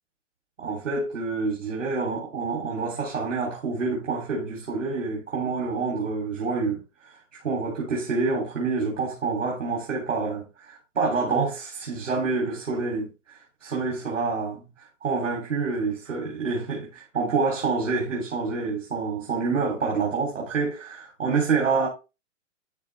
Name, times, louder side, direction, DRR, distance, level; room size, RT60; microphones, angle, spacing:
voice 1, 0.6-7.2 7.4-14.6 15.0-16.8 17.1-21.9, right 4 dB, 90° right, 3.3 m, -27 dB
12.0 x 4.1 x 3.4 m
hypercardioid pair, 165°, 37 cm